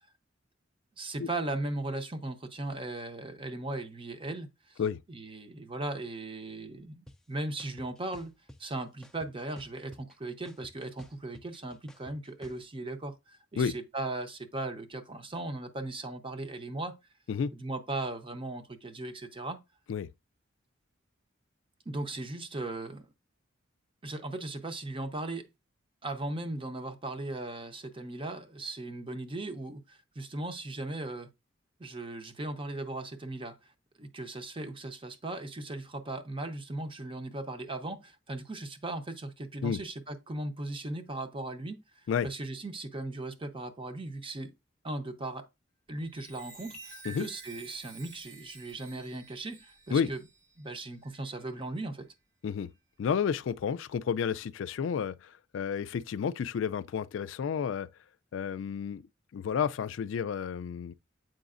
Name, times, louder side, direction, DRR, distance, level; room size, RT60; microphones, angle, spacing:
voice 1, 1.0-4.8 5.1-8.3 8.6-17.0 17.5-19.6 21.9-23.1 24.0-25.5 26.0-31.3 31.8-33.6 34.0-41.8 42.2-44.5 44.8-45.5 45.9-50.2 50.6-52.1, right 2 dB, 30° right, 0.7 m, -38 dB
sound 1, 7.1-7.2 7.6-8.6 9.0-10.1 10.5-12.6, equal, 5° left, 0.4 m, -51 dB
Chime, 45.9-51.9 52.4-52.7, right 4 dB, 65° right, 2.3 m, -51 dB
voice 2, 53.0-57.9 58.3-59.0 59.3-60.9, left 7 dB, 70° left, 0.3 m, -31 dB
7.6 x 5.0 x 2.5 m
head